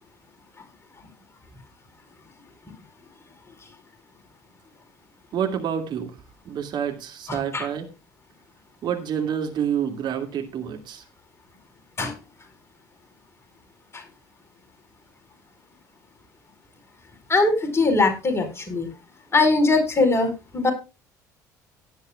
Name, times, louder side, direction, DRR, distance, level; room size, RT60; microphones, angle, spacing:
voice 1, 5.3-6.2 6.4-7.9 8.8-11.0, right 8 dB, 50° right, 5 dB, 2.3 m, -28 dB
voice 2, 7.3-7.7 12.0-12.1 13.9-14.0 17.3-18.9 19.3-20.7, left 3 dB, 25° left, 6 dB, 4.8 m, -21 dB
17.0 x 10.5 x 2.3 m, 0.28 s
figure-of-eight pair, 55°, 10 cm